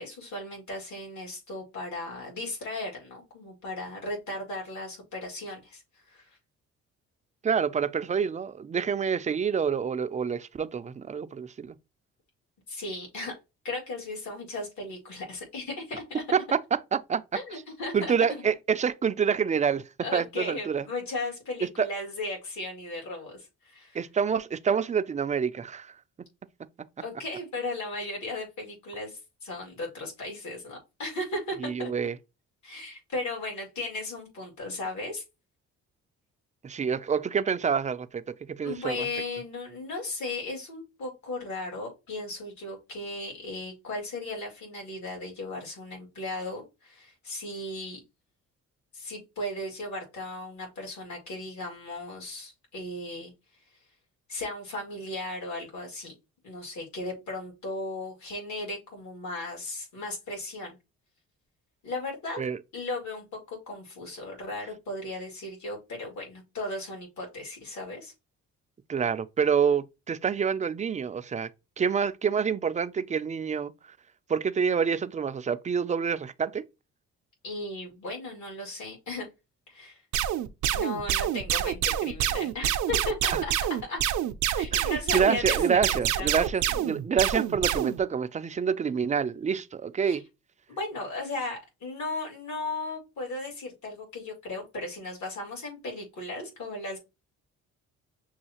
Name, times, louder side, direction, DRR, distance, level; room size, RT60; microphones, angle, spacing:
voice 1, 0.0-6.4 12.7-13.4 13.6-16.2 17.3-18.1 20.0-24.0 27.0-31.9 32.6-35.2 38.6-48.0 48.9-53.3 54.3-56.1 56.4-60.8 61.8-62.4 62.7-68.1 77.4-79.3 79.7-80.0 80.7-83.5 83.9-84.0 84.6-86.4 90.0-90.2 90.7-97.0, left 2 dB, 70° left, 2.3 m, -36 dB
voice 2, 7.4-11.8 16.3-16.6 16.9-17.2 17.9-19.8 20.1-20.8 21.8-21.9 23.9-25.9 31.6-32.1 36.6-39.0 62.4-62.6 68.9-71.5 71.8-73.7 74.3-76.7 84.7-90.2, right 6 dB, 25° right, 0.4 m, -27 dB
sound 1, 80.1-88.0, right 11 dB, 75° right, 0.5 m, -27 dB
6.3 x 2.4 x 2.9 m
cardioid pair, 90°, 30 cm